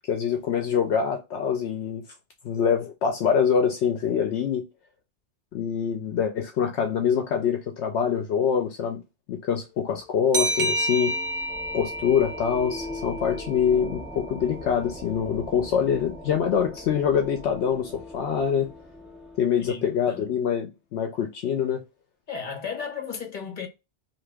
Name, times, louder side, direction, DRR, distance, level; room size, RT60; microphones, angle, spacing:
voice 1, 0.1-2.0 2.4-4.7 5.5-9.0 9.3-11.1 11.7-18.7 19.4-21.8, left 7 dB, 75° left, 0.9 m, -25 dB
sound 1, 9.7-20.3, left 2 dB, ahead, 0.6 m, -41 dB
sound 2, 10.3-13.7, right 1 dB, 55° right, 1.0 m, -29 dB
voice 2, 19.6-20.4 22.3-23.7, left 6 dB, 45° left, 1.1 m, -35 dB
2.9 x 2.5 x 3.3 m
omnidirectional pair, 1.2 m